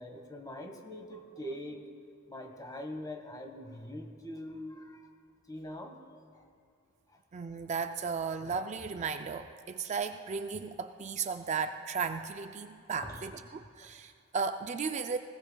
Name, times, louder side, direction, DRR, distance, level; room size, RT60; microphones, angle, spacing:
voice 1, 0.0-1.8 2.3-5.1 5.5-6.0 6.3-6.4 13.0-13.3 13.8-13.9, left 1 dB, 20° left, 4 dB, 1.3 m, -43 dB
voice 2, 7.3-15.2, right 5 dB, 35° right, 7 dB, 0.4 m, -35 dB
20.0 x 17.5 x 2.3 m, 2.4 s
head